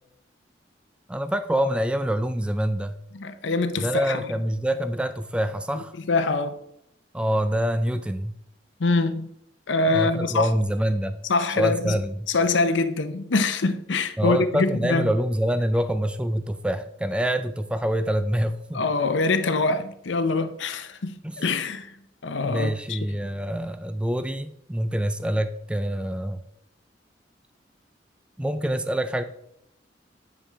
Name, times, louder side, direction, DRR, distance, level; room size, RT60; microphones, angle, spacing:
voice 1, 1.1-3.0 3.8-5.9 7.1-8.4 9.9-11.2 11.6-12.3 14.2-18.8 21.2-21.4 22.4-26.4 28.4-29.2, equal, 5° right, 0.3 m, -26 dB
voice 2, 3.1-4.3 6.1-6.6 8.8-9.3 9.7-10.5 11.3-12.0 12.3-15.1 18.7-22.0 22.2-23.0, left 3 dB, 85° left, 0.7 m, -24 dB
9.9 x 5.3 x 3.4 m
head